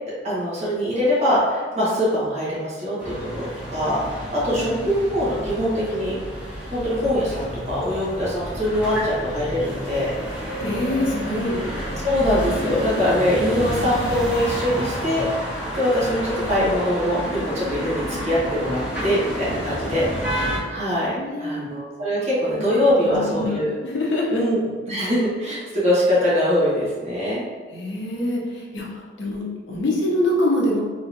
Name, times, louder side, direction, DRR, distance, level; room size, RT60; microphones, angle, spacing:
voice 1, 0.2-6.2 6.7-10.6 11.3-11.4 12.0-15.3 15.7-23.7 24.3-27.4, equal, 35° right, -8 dB, 1.4 m, -23 dB
sound 1, 3.0-20.6, equal, 10° right, 1.4 m, -30 dB
voice 2, 10.6-11.6 16.2-16.7 20.9-21.7 23.0-24.4 27.7-30.8, left 1 dB, 80° left, -4 dB, 0.8 m, -25 dB
3.9 x 3.0 x 2.7 m, 1.5 s
head